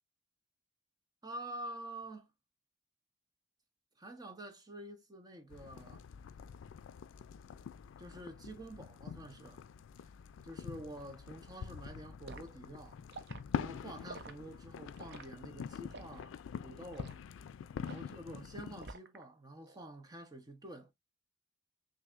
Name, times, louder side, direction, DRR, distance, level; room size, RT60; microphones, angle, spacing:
voice 1, 1.2-2.3 4.0-6.0 8.0-9.6 10.4-13.0 13.6-16.3 16.6-17.1 17.8-20.9, right 1 dB, 20° right, 0.8 m, -48 dB
sound 1, 5.5-18.9, left 7 dB, 85° left, 0.3 m, -45 dB
Liquid, 12.3-12.5 13.1-13.4 14.1-14.3 15.0-15.3 15.9-16.2 16.9-17.2 17.9-18.1 18.8-19.2 19.6-19.8, right 3 dB, 60° right, 0.6 m, -49 dB
6.0 x 2.6 x 2.4 m
head